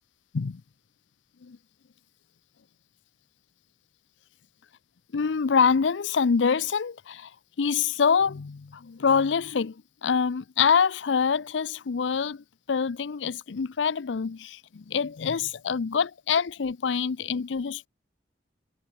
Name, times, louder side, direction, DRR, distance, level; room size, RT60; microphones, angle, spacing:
voice 1, 5.1-7.3 7.6-9.7 10.0-17.9, left 6 dB, 90° left, 0.5 m, -25 dB
head